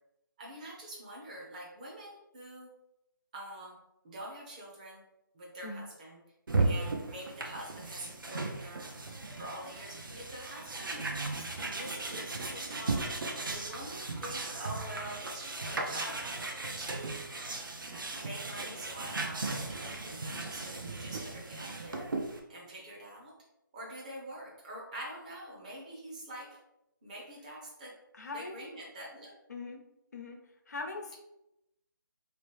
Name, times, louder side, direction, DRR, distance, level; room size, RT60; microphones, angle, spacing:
voice 1, 0.4-2.7 3.3-3.8 4.0-5.0 5.3-6.2 6.6-8.9 9.4-13.0 13.4-16.4 16.8-17.3 18.1-22.1 22.5-23.3 23.7-26.6 27.0-28.0 28.3-29.3, right 1 dB, 20° right, -3 dB, 0.6 m, -45 dB
sound 1, 6.5-22.4, right 3 dB, 70° right, 0.7 m, -36 dB
voice 2, 28.1-28.7 29.5-29.8 30.1-31.2, left 3 dB, 50° left, 3 dB, 0.6 m, -41 dB
3.2 x 2.9 x 3.2 m, 0.87 s
figure-of-eight pair, 165°, 11 cm